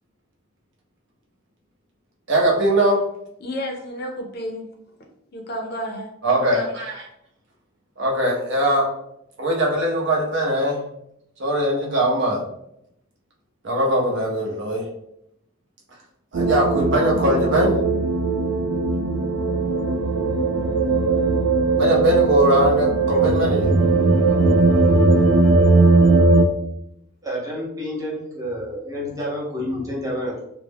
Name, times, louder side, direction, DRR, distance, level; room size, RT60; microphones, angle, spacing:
voice 1, 2.3-3.0 6.2-7.1 8.0-8.9 9.4-10.8 11.4-12.4 13.6-14.8 16.3-17.7 21.8-23.7, equal, 55° right, 0.7 m, -21 dB
voice 2, 3.4-4.6 5.3-6.1, equal, 45° left, 0.5 m, -31 dB
sound 1, 16.3-26.4, right 3 dB, 80° right, 0.3 m, -18 dB
voice 3, 27.2-30.4, equal, 15° right, 0.7 m, -29 dB
2.4 x 2.1 x 3.3 m
head